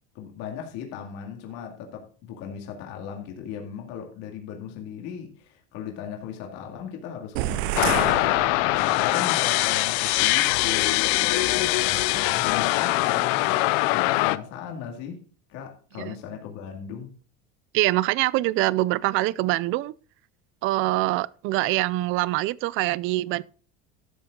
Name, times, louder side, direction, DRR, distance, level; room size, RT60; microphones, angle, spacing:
voice 1, 0.1-8.3 8.7-15.2 15.5-17.1, left 8 dB, 60° left, 2.2 m, -37 dB
sound 1, 7.4-9.2, right 16 dB, 90° right, 0.7 m, -30 dB
sound 2, 7.8-14.4, left 19 dB, 75° left, 0.6 m, -22 dB
voice 2, 17.7-19.9 20.6-23.4, right 18 dB, 40° right, 0.4 m, -24 dB
12.5 x 7.6 x 3.8 m
cardioid pair, 165°, 31 cm